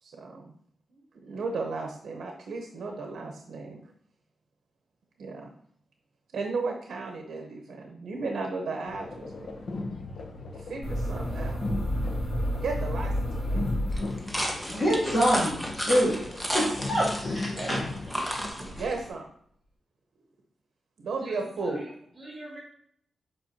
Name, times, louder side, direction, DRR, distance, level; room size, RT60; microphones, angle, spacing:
voice 1, 0.0-0.5 0.9-3.8 5.2-5.5 6.3-9.5 10.6-11.6 12.6-13.7 17.5-17.7 18.8-19.3 21.0-21.8, right 3 dB, 75° right, 2 dB, 0.9 m, -35 dB
sound 1, 8.9-18.5, left 2 dB, 60° left, 0.9 m, -37 dB
sound 2, 10.8-14.6, equal, 85° left, 2.9 m, -30 dB
sound 3, 13.9-19.1, equal, 5° left, 0.8 m, -33 dB
voice 2, 14.6-16.2 16.5-17.9, equal, 30° left, -7 dB, 2.5 m, -26 dB
voice 3, 21.2-22.6, right 1 dB, 20° right, -6 dB, 2.4 m, -44 dB
7.9 x 5.1 x 2.8 m, 0.65 s
wide cardioid pair, 165°, 0 cm